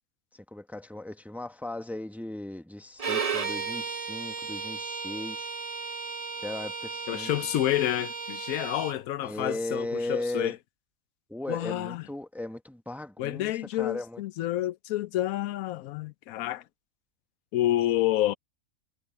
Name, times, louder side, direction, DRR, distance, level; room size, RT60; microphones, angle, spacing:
voice 1, 0.3-5.5 6.4-7.3 9.2-10.5 11.3-13.5 13.8-14.2, left 1 dB, ahead, 1.1 m, -36 dB
Bowed string instrument, 3.0-9.0, right 5 dB, 30° right, 1.0 m, -34 dB
voice 2, 7.1-10.6 11.5-12.1 13.2-16.6 17.5-18.3, left 14 dB, 85° left, 1.1 m, -29 dB
omnidirectional pair, 1.5 m